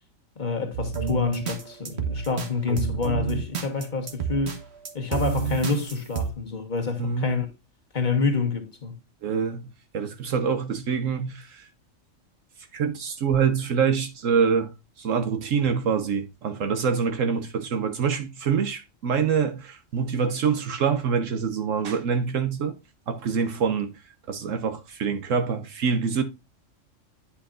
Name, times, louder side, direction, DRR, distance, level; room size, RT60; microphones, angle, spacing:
voice 1, 0.3-4.6 4.9-7.5 7.9-9.0, left 4 dB, 35° left, 1.6 m, -27 dB
sound 1, 0.7-6.3, right 5 dB, 55° right, 1.5 m, -29 dB
voice 2, 9.2-9.7 9.9-11.7 12.7-14.7 15.0-22.8 23.1-24.0 24.3-26.2, right 6 dB, 75° right, 1.2 m, -25 dB
9.9 x 5.7 x 2.4 m
omnidirectional pair, 1.3 m